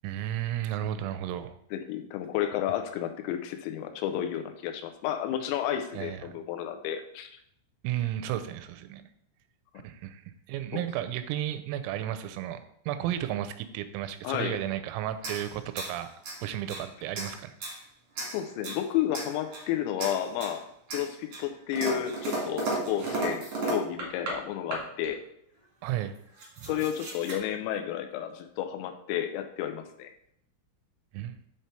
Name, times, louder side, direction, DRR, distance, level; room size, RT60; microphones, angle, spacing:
voice 1, 0.0-1.5 6.0-6.4 7.8-9.1 9.8-16.1 16.4-17.5 25.8-26.1 26.6-26.7 31.1-31.4, right 12 dB, 85° right, 11 dB, 3.3 m, -33 dB
voice 2, 1.7-7.4 10.7-10.9 14.2-14.6 18.3-20.6 20.9-25.2 26.6-30.1, left 10 dB, 85° left, 7 dB, 3.3 m, -32 dB
sound 1, 15.1-16.8 17.1-17.8 18.1-18.8 19.1-19.7 20.0-20.6 20.9-24.4 24.7-25.1 25.8-25.9 26.1-27.4, right 2 dB, 70° right, 1.4 m, -35 dB
8.7 x 3.3 x 4.3 m, 0.71 s
omnidirectional pair, 5.9 m